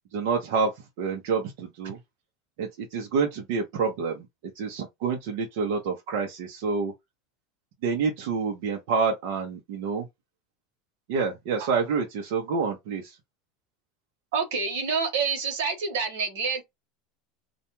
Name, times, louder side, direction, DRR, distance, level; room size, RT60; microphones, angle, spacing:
voice 1, 0.1-0.7 1.0-2.0 2.6-4.2 4.6-6.9 7.8-10.0 11.1-13.0, right 5 dB, 65° right, 0.7 m, -27 dB
voice 2, 14.3-16.6, right 5 dB, 85° right, 1.1 m, -27 dB
2.5 x 2.2 x 2.9 m
supercardioid pair, 160°, 0 cm